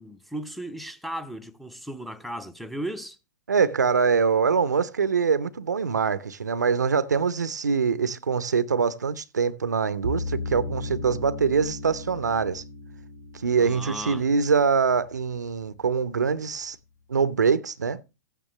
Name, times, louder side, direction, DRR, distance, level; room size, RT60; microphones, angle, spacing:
voice 1, 0.0-3.2 13.6-14.2, right 1 dB, ahead, 0.7 m, -36 dB
voice 2, 3.5-12.6 13.4-16.8 17.1-18.0, right 5 dB, 80° right, 0.6 m, -24 dB
sound 1, 10.0-15.2, left 2 dB, 90° left, 2.9 m, -36 dB
13.5 x 9.0 x 3.0 m
figure-of-eight pair, 110°, 9 cm